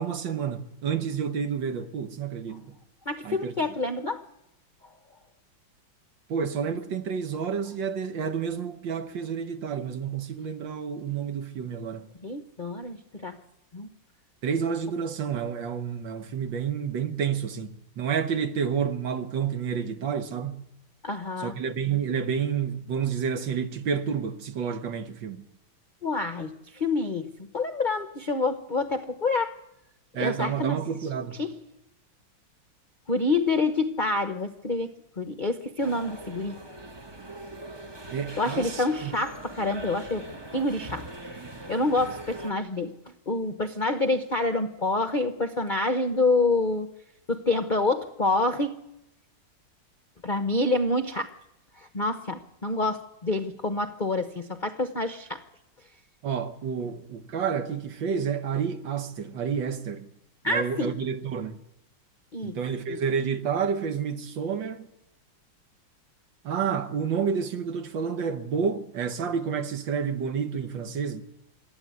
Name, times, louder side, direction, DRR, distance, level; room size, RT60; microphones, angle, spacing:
voice 1, 0.0-2.8 3.2-3.5 6.3-12.1 14.4-20.6 21.4-25.5 30.1-31.4 38.1-39.1 56.2-60.1 60.5-61.6 62.4-64.9 66.4-71.2, right 7 dB, 70° right, 1.8 m, -29 dB
voice 2, 3.1-4.2 12.2-13.4 13.7-13.9 21.0-21.6 26.0-29.5 30.2-30.8 31.4-31.5 33.1-34.9 35.2-36.6 38.3-40.2 40.5-41.0 41.3-41.4 41.7-42.9 43.3-46.9 47.3-48.8 50.2-51.3 51.8-55.4 60.4-61.0 62.3-62.6 62.9-63.0, left 2 dB, 40° left, 0.7 m, -27 dB
sound 1, 35.8-42.5, right 1 dB, 20° right, 0.8 m, -41 dB
27.5 x 12.5 x 9.5 m
omnidirectional pair, 2.2 m